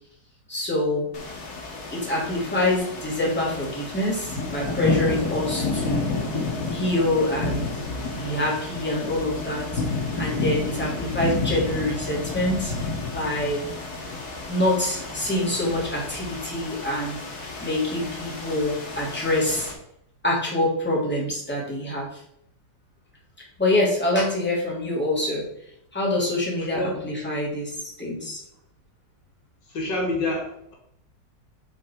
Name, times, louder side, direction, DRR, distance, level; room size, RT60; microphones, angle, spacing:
voice 1, 0.5-1.1 1.9-6.2 6.7-7.7 8.1-12.7 13.1-13.7 14.5-19.7 20.2-22.1 23.6-25.5 25.9-28.4, left 1 dB, 5° left, -5 dB, 2.7 m, -26 dB
sound 1, 1.1-19.7, left 3 dB, 60° left, 2.0 m, -31 dB
voice 2, 26.6-27.0 29.7-30.7, left 1 dB, 80° left, -1 dB, 2.7 m, -27 dB
7.3 x 6.3 x 4.6 m, 0.73 s
omnidirectional pair, 1.9 m